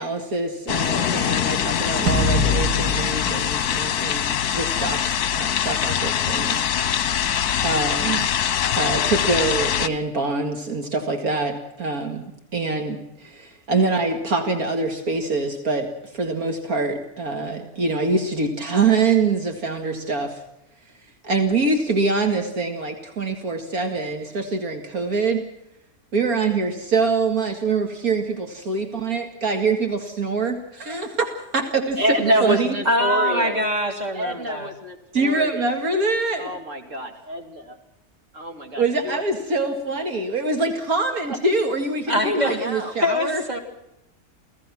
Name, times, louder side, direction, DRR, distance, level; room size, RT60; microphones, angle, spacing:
voice 1, 0.0-6.9 7.6-8.3 8.7-20.4 21.2-25.4 26.1-32.0 32.4-32.7 35.1-36.5 38.8-43.4, right 3 dB, 70° right, 5 dB, 2.5 m, -24 dB
sound 1, 0.7-9.9, left 9 dB, 80° left, 1.5 m, -23 dB
sound 2, 2.1-4.6, left 1 dB, 85° right, 3.1 m, -25 dB
voice 2, 32.0-33.6 34.1-35.7 36.3-37.8 38.3-39.2 41.3-41.4 42.4-43.0, right 1 dB, 55° right, 4 dB, 3.1 m, -27 dB
voice 3, 32.9-34.7 42.1-42.7 43.0-43.6, left 1 dB, 25° right, 3 dB, 3.6 m, -23 dB
29.0 x 17.0 x 6.1 m, 0.83 s
omnidirectional pair, 1.6 m